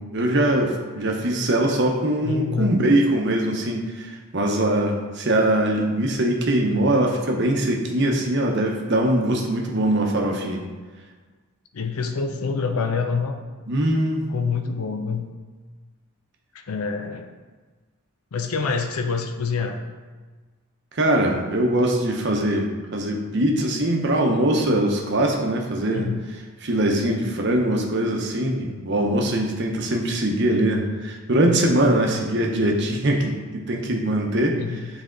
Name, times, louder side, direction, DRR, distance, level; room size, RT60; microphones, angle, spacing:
voice 1, 0.0-10.6 13.7-14.2 20.9-26.1 26.6-34.6, right 1 dB, 50° right, 1 dB, 0.8 m, -22 dB
voice 2, 2.2-2.8 11.7-13.4 14.3-15.3 16.5-17.3 18.3-19.8 25.9-26.2 32.1-32.4 34.6-34.9, left 5 dB, 75° left, 6 dB, 0.5 m, -26 dB
7.4 x 3.4 x 3.8 m, 1.4 s
head